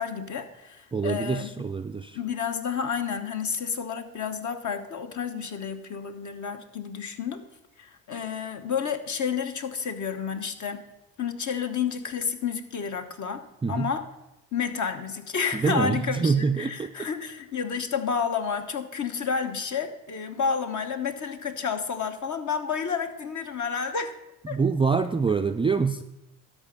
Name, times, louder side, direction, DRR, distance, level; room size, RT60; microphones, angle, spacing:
voice 1, 0.0-1.7 2.1-7.4 7.8-10.8 11.2-14.0 14.5-24.1 24.5-24.6, left 6 dB, 45° left, 7 dB, 1.1 m, -30 dB
voice 2, 0.9-2.2 13.6-13.9 15.5-16.9 24.5-26.0, right 5 dB, 15° right, 6 dB, 0.3 m, -25 dB
12.5 x 5.1 x 5.2 m, 0.90 s
supercardioid pair, 70°, 39 cm